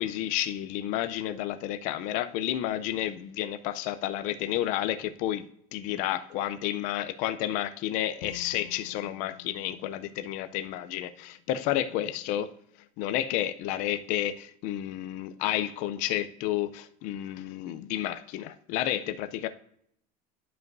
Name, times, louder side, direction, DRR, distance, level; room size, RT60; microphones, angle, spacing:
voice 1, 0.0-5.5 5.7-12.5 13.0-19.5, left 12 dB, 45° left, 11 dB, 0.5 m, -31 dB
Bowed string instrument, 8.2-11.3, left 12 dB, 80° left, 0.7 m, -49 dB
11.5 x 5.3 x 2.6 m, 0.70 s
cardioid pair, 170°, 19 cm